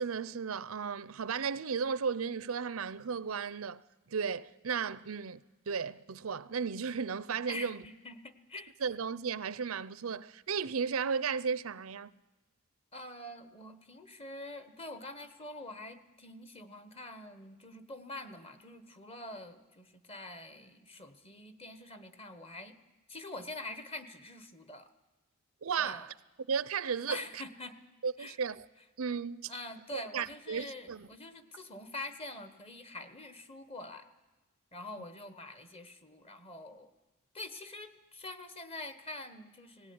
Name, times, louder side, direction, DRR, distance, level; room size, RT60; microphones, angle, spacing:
voice 1, 0.0-3.8 4.1-5.4 5.7-7.8 8.8-12.1 25.6-26.1 26.5-27.4 28.0-28.7 29.0-29.5 29.9-31.1, right 6 dB, 90° right, 0.6 m, -34 dB
voice 2, 7.5-8.7 12.9-22.8 23.1-24.9 25.8-26.1 27.1-27.8 28.2-28.4 29.5-34.1 34.7-36.9 37.3-39.9, left 2 dB, 30° left, 1.2 m, -45 dB
18.0 x 17.0 x 9.6 m
head